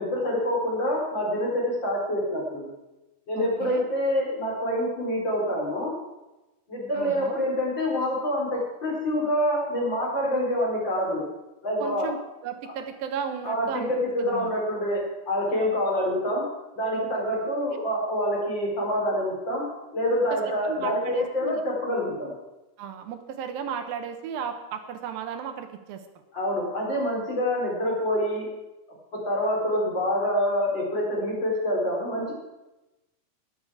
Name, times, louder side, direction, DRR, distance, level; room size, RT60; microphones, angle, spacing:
voice 1, 0.0-2.7 3.3-6.0 6.7-11.2 11.6-12.1 13.4-16.5 16.7-19.7 19.9-22.3 26.3-28.5 29.2-32.4, equal, 25° left, -3 dB, 4.5 m, -26 dB
voice 2, 3.4-3.8 6.9-7.4 11.8-12.2 12.4-13.9 14.2-14.5 20.3-21.6 22.8-26.0, right 7 dB, 70° right, 7 dB, 2.5 m, -34 dB
20.5 x 8.2 x 4.8 m, 1.0 s
omnidirectional pair, 5.0 m